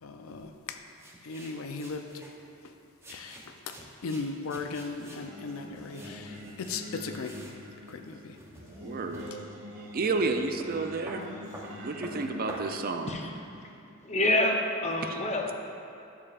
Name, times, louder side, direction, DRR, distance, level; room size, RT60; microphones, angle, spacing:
voice 1, 0.0-0.8 1.2-2.1 2.6-2.7 3.1-7.4 7.9-8.4 9.3-9.4, left 4 dB, 75° left, 6 dB, 0.5 m, -37 dB
sound 1, 1.0-2.4 3.0-6.9 7.1-7.6 7.9-9.4 10.0-10.1 10.3-12.6, right 1 dB, 10° right, 0.7 m, -48 dB
Singing, 5.2-13.7, equal, 60° right, 1.4 m, -45 dB
voice 2, 8.8-9.2 9.9-11.3 11.8-13.1 15.0-15.2, right 3 dB, 45° right, 5 dB, 0.4 m, -31 dB
voice 3, 14.0-15.5, left 1 dB, 30° left, 1 dB, 0.7 m, -27 dB
11.5 x 6.6 x 2.4 m, 2.7 s
head